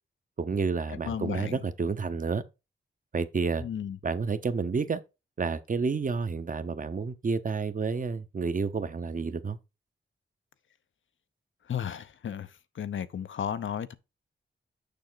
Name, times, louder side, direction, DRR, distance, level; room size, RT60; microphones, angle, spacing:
voice 1, 0.4-2.4 3.1-3.6 4.0-5.0 5.4-9.6, right 4 dB, 40° right, 0.8 m, -30 dB
voice 2, 0.9-1.6 3.6-4.0 11.7-13.9, left 8 dB, 75° left, 0.7 m, -34 dB
6.9 x 6.0 x 3.9 m
wide cardioid pair, 100°, 20 cm